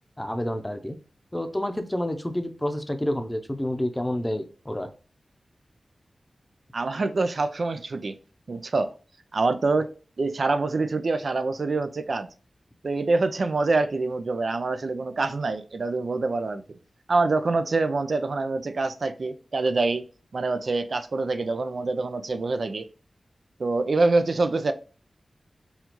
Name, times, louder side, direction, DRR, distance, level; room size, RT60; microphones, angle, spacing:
voice 1, 0.2-1.0 1.3-4.9, left 1 dB, 15° left, 0.6 m, -29 dB
voice 2, 6.7-8.2 8.5-8.9 9.3-9.9 10.2-12.3 12.8-16.8 17.1-20.0 20.3-22.9 23.6-24.7, right 3 dB, 70° right, 0.4 m, -25 dB
4.2 x 2.4 x 2.9 m
cardioid pair, 45°, 0 cm